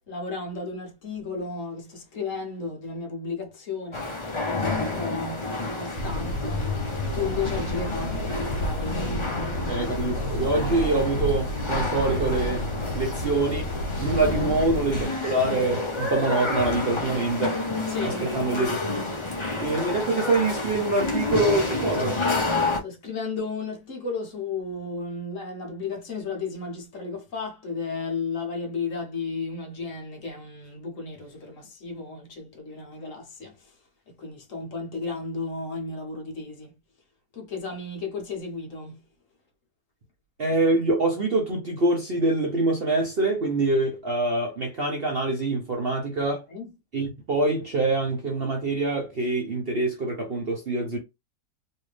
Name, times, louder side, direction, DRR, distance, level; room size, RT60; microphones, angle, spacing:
voice 1, 0.1-4.1 4.4-6.7 7.1-9.6 14.2-14.6 17.9-18.3 22.8-33.8 34.1-36.7 37.3-39.0 46.5-46.7, left 4 dB, 55° left, 1.3 m, -34 dB
sound 1, 3.9-22.8, left 3 dB, 30° left, 0.6 m, -29 dB
sound 2, 6.0-15.1, equal, 85° left, 1.5 m, -31 dB
voice 2, 9.7-12.7 12.9-13.7 14.0-17.6 18.0-18.8 19.6-22.2 40.4-46.4 46.9-51.0, right 2 dB, 50° right, 0.8 m, -25 dB
3.2 x 2.7 x 3.2 m
omnidirectional pair, 1.8 m